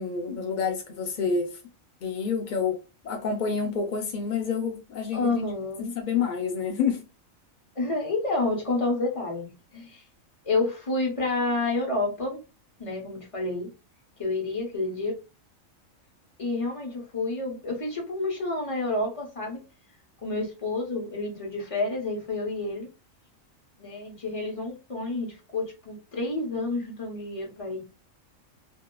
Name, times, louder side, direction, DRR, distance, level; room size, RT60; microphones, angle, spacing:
voice 1, 0.0-1.6 2.0-5.3 5.8-7.0, left 5 dB, 85° left, 0.4 m, -28 dB
voice 2, 5.1-5.9 7.8-10.0 10.4-12.4 12.8-13.7 14.2-15.2 16.4-19.7 20.2-22.9 23.8-27.8, left 2 dB, 30° left, 0.8 m, -29 dB
2.7 x 2.3 x 2.2 m
omnidirectional pair, 1.4 m